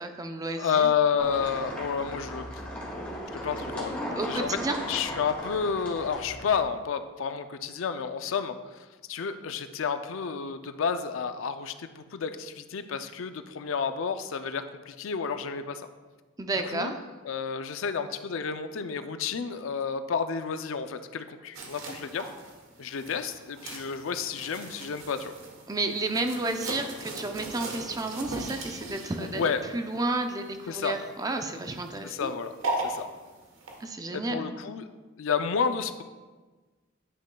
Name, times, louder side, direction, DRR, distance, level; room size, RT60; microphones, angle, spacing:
voice 1, 0.0-0.9 4.2-4.8 16.4-17.0 25.7-32.3 33.8-34.5, right 2 dB, 20° right, 6 dB, 0.4 m, -31 dB
voice 2, 0.6-2.5 3.4-3.9 4.3-4.6 4.9-8.6 9.1-15.8 16.6-17.0 17.2-22.3 22.8-25.3 29.2-29.6 30.7-31.0 32.0-32.5 32.8-33.1 34.1-34.9 35.2-36.0, left 6 dB, 70° left, 10 dB, 0.4 m, -30 dB
sound 1, 1.2-6.6, equal, 5° left, 1.9 m, -37 dB
sound 2, 21.5-33.8, right 2 dB, 70° right, 1.2 m, -39 dB
9.8 x 6.2 x 2.2 m, 1.3 s
head